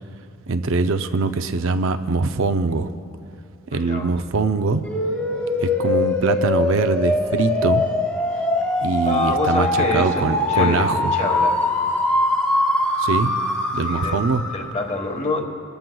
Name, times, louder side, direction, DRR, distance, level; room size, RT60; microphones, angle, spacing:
voice 1, 0.5-2.9 3.7-4.8 5.6-7.8 8.8-11.1 13.0-13.3 13.7-14.4, right 4 dB, 65° right, 8 dB, 0.5 m, -22 dB
voice 2, 3.7-4.1 9.1-10.2 10.5-11.5 13.8-14.2 14.5-15.4, left 3 dB, 30° left, 2 dB, 1.3 m, -26 dB
sound 1, 4.8-14.7, left 2 dB, 10° left, 1.4 m, -22 dB
23.0 x 13.5 x 2.3 m, 2.4 s
head